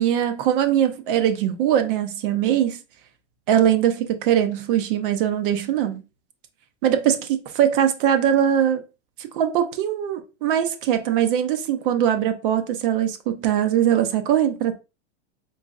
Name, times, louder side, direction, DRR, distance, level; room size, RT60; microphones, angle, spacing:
voice 1, 0.0-2.8 3.5-6.0 6.8-8.8 9.2-14.7, right 10 dB, 45° right, 0.6 m, -21 dB
3.9 x 2.9 x 2.4 m
supercardioid pair, 150°, 37 cm